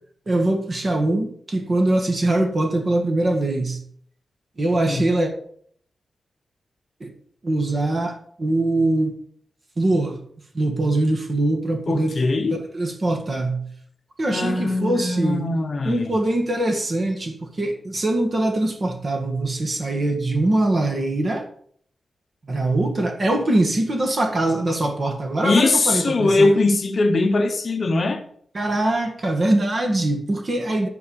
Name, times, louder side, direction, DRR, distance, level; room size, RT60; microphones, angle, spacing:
voice 1, 0.3-3.8 4.6-5.3 7.0-7.1 7.4-9.2 9.8-10.2 10.5-12.1 12.7-13.7 14.2-15.4 15.9-21.4 22.5-26.5 28.5-30.9, right 2 dB, 35° right, 4 dB, 1.7 m, -22 dB
voice 2, 11.9-12.6 14.3-16.2 25.4-28.2, left 3 dB, 45° left, 6 dB, 1.0 m, -21 dB
11.5 x 4.7 x 7.0 m, 0.63 s
wide cardioid pair, 160°, 0 cm